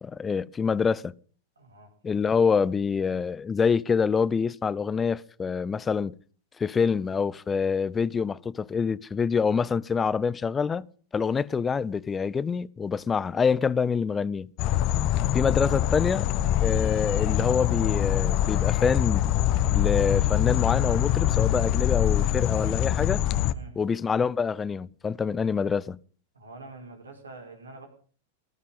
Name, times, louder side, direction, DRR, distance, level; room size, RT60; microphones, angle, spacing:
voice 1, 0.0-1.1 2.0-6.2 6.6-10.9 11.1-14.5 15.3-16.3 16.6-19.3 19.7-23.2 23.8-26.0, left 6 dB, 20° left, 0.7 m, -26 dB
voice 2, 1.6-1.9 23.5-23.8 26.3-27.9, right 3 dB, 90° right, 5.3 m, -45 dB
sound 1, 14.6-23.5, left 12 dB, 45° left, 1.2 m, -24 dB
19.0 x 13.0 x 5.4 m
hypercardioid pair, 100°, 0 cm